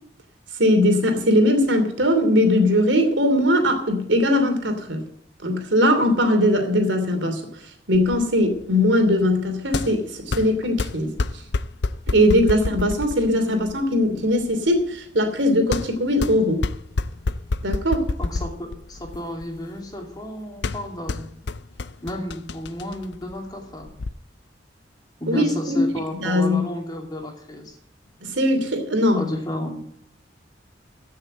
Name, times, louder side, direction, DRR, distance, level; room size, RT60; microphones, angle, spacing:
voice 1, 0.6-5.1 5.4-7.6 7.9-11.4 12.1-16.6 17.6-18.1 25.3-25.8 26.2-26.6 28.2-29.3, left 1 dB, 85° right, 5 dB, 2.9 m, -20 dB
sound 1, 7.9-24.1, left 3 dB, 65° left, 0.5 m, -30 dB
voice 2, 18.2-21.3 22.0-23.9 25.2-27.8 29.1-29.8, left 1 dB, 20° left, 2 dB, 2.6 m, -32 dB
15.5 x 6.6 x 7.8 m, 0.68 s
head